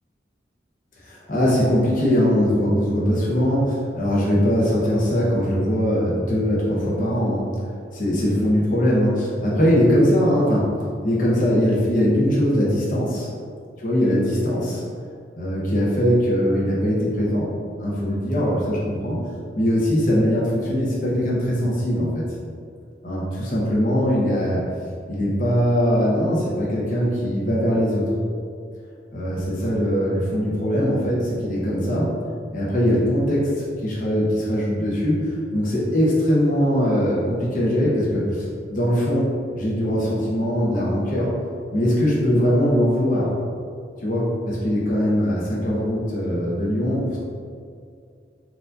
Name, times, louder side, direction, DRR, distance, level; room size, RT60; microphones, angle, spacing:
voice 1, 1.0-7.5 7.9-10.7 11.0-13.3 13.8-14.8 15.4-17.5 17.8-19.2 19.6-22.2 23.0-24.6 25.1-28.1 29.1-32.1 32.5-33.5 33.8-41.3 41.7-43.3 44.0-47.2, equal, 50° left, -6 dB, 0.9 m, -21 dB
4.6 x 2.7 x 3.8 m, 2.3 s
head